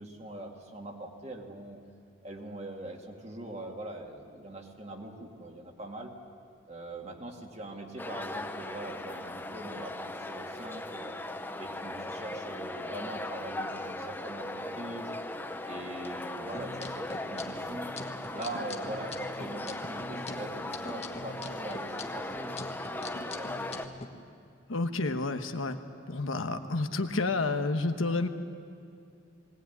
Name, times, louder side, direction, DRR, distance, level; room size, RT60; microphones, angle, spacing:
voice 1, 0.0-1.8 2.2-6.1 6.7-11.2 11.6-15.1 15.6-17.9 18.3-22.6 22.9-24.0, right 1 dB, 30° right, 2 dB, 2.1 m, -42 dB
sound 1, 8.0-23.9, left 1 dB, 10° left, 0.8 m, -38 dB
sound 2, 16.5-24.1, left 2 dB, 30° left, 1.3 m, -43 dB
voice 2, 24.7-25.8 26.1-28.3, left 3 dB, 90° left, 7 dB, 1.2 m, -30 dB
21.5 x 18.0 x 9.3 m, 2.4 s
head